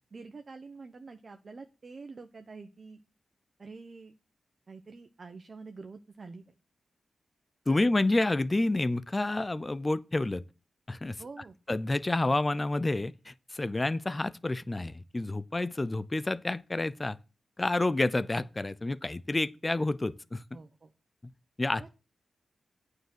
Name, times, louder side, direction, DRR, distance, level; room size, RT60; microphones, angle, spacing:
voice 1, 0.1-3.0 3.6-4.1 4.7-6.5 7.7-7.8 11.2-11.6 20.5-20.9 21.8-21.9, right 4 dB, 45° right, 0.9 m, -47 dB
voice 2, 7.7-10.4 10.9-11.2 11.7-17.2 17.6-20.4 21.2-21.3 21.6-21.9, left 2 dB, 25° left, 0.5 m, -29 dB
9.0 x 4.8 x 7.6 m
cardioid pair, 85°, 0 cm